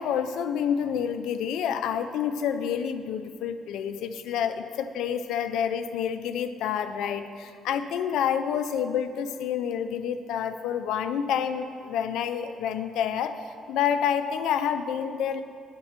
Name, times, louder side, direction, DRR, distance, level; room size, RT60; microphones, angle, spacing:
voice 1, 0.0-13.4 13.7-15.4, left 8 dB, 75° left, 9 dB, 0.4 m, -28 dB
8.4 x 4.4 x 7.3 m, 2.3 s
hypercardioid pair, 55°, 0 cm